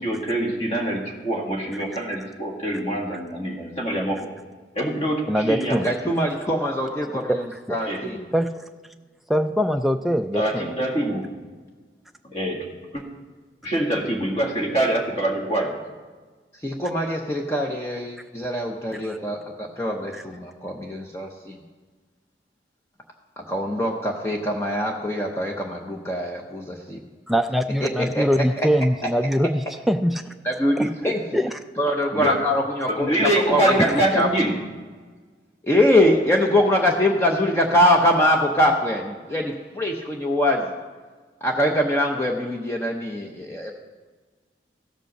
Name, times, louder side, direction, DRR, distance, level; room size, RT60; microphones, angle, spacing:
voice 1, 0.0-4.3 4.8-5.8 7.8-8.1 10.3-11.3 12.3-12.7 12.9-13.0 13.6-15.7 32.1-32.4 32.9-34.5, right 1 dB, 35° left, 0 dB, 1.9 m, -24 dB
voice 2, 5.3-5.9 7.3-7.4 7.7-7.8 8.3-8.5 9.3-10.7 19.0-19.2 20.1-20.2 27.3-30.2 30.8-31.6 33.8-33.9, equal, ahead, 5 dB, 0.3 m, -23 dB
voice 3, 5.8-7.4 7.7-8.3 16.6-21.6 23.4-27.0 27.8-28.7 30.4-31.2 31.8-34.3 35.6-40.7 41.4-43.7, left 1 dB, 15° left, 0 dB, 0.7 m, -23 dB
15.5 x 5.2 x 6.5 m, 1.4 s
head